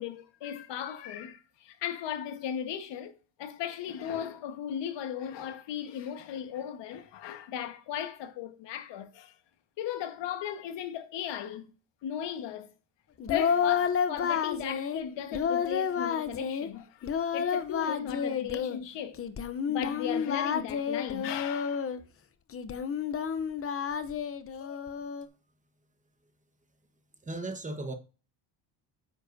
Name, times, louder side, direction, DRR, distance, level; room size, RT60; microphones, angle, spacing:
voice 1, 0.0-3.1 3.4-9.3 9.8-11.7 12.0-12.7 13.3-19.2 19.7-21.9, left 9 dB, 65° left, 1.5 m, -36 dB
Singing, 13.2-15.0 15.3-16.7 17.0-18.8 19.2-22.0 22.5-25.3, left 7 dB, 30° left, 0.7 m, -30 dB
voice 2, 27.2-27.9, right 2 dB, 15° right, 1.2 m, -36 dB
9.5 x 7.4 x 2.7 m
cardioid pair, 130°, 46 cm